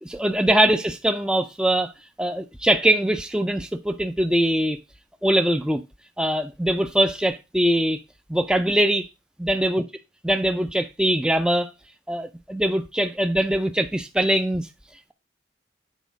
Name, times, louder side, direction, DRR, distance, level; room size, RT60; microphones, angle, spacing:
voice 1, 0.0-1.9 2.2-4.8 5.2-5.8 6.2-8.0 8.3-9.1 9.4-9.8 10.2-11.7 12.1-14.7, right 1 dB, 5° right, 0.3 m, -22 dB
8.3 x 4.5 x 5.1 m
head